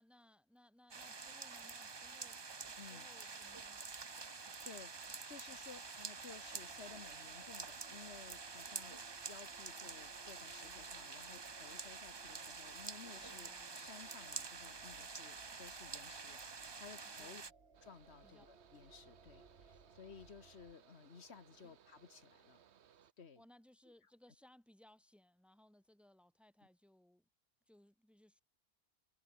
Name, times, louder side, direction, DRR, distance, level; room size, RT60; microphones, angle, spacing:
voice 1, 0.0-3.8 13.1-13.9 17.2-17.5 18.2-18.5 19.7-19.8 21.6-21.7 23.4-27.3 27.7-28.4, left 1 dB, ahead, 1.9 m, -66 dB
sound 1, 0.9-17.5, right 4 dB, 30° right, 0.7 m, -48 dB
voice 2, 2.8-3.1 4.3-9.0 9.3-17.4 17.8-22.6 23.2-23.4, left 5 dB, 75° left, 1.7 m, -57 dB
sound 2, 6.4-20.7, right 4 dB, 70° right, 2.3 m, -64 dB
Mechanical fan, 17.7-23.1, right 9 dB, 90° right, 1.2 m, -66 dB
omnidirectional pair, 1.1 m